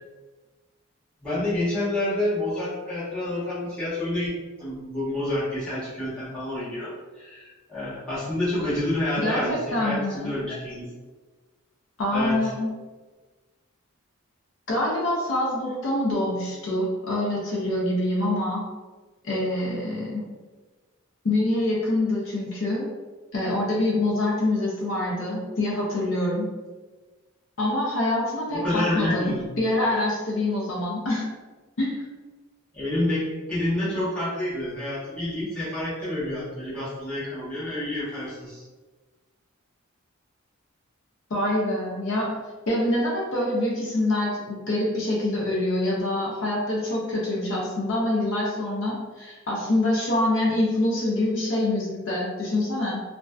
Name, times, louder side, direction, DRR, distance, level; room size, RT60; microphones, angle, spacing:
voice 1, 1.2-4.3 4.6-10.9 12.1-12.5 28.5-29.5 32.7-38.7, left 1 dB, 5° left, -12 dB, 1.0 m, -28 dB
voice 2, 9.2-10.3 12.0-12.7 14.7-18.7 19.2-20.2 21.2-22.9 23.3-26.5 27.6-31.3 31.8-32.0 41.3-42.4 42.7-53.0, left 1 dB, 60° left, -4 dB, 0.5 m, -25 dB
2.5 x 2.1 x 2.3 m, 1.3 s
head